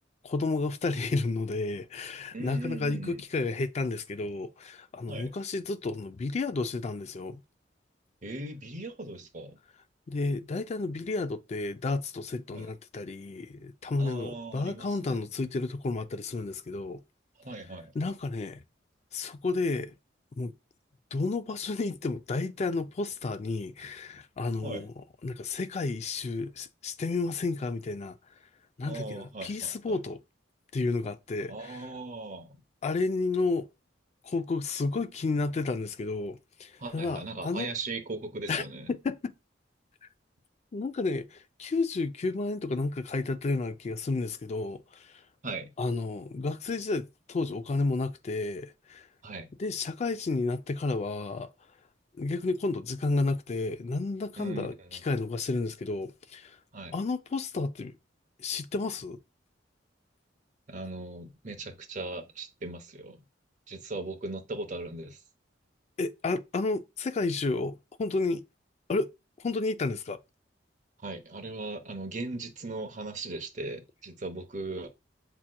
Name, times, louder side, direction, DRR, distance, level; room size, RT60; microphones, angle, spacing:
voice 1, 0.2-7.4 10.1-17.0 17.9-18.6 19.1-19.9 20.4-20.5 21.1-28.2 28.8-30.2 30.7-31.9 32.8-33.7 34.2-37.7 38.5-39.3 40.7-45.1 45.8-49.1 49.6-51.5 52.2-56.6 56.9-57.9 58.4-59.2 66.0-68.4 68.9-69.1 69.4-70.2, left 3 dB, 35° left, 0.4 m, -31 dB
voice 2, 2.3-3.2 5.1-5.3 8.2-9.6 12.5-12.7 14.0-15.2 17.4-17.9 24.6-24.9 28.8-30.0 31.5-32.6 36.8-38.9 45.4-45.7 49.2-49.5 54.4-55.0 56.7-56.9 60.7-63.2 63.7-65.2 71.0-74.9, right 2 dB, 45° right, 0.8 m, -38 dB
7.4 x 2.8 x 2.2 m
head